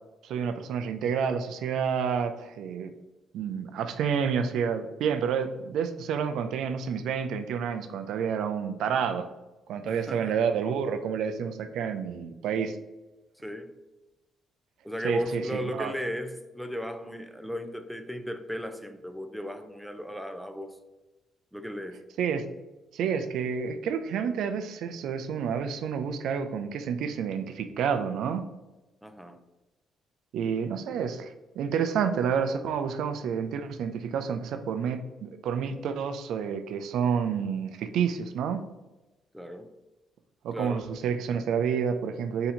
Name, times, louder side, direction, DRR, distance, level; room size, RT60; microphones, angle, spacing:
voice 1, 0.2-2.9 3.3-9.3 9.7-12.8 15.0-15.9 22.2-22.5 22.9-28.4 30.3-38.6 40.4-42.5, right 7 dB, 80° right, 0.4 m, -29 dB
voice 2, 9.9-10.4 13.4-13.7 14.8-20.8 21.5-22.0 29.0-29.4 39.3-39.7 40.5-41.0, equal, ahead, 0.5 m, -35 dB
3.8 x 2.9 x 4.1 m
cardioid pair, 90°, 0 cm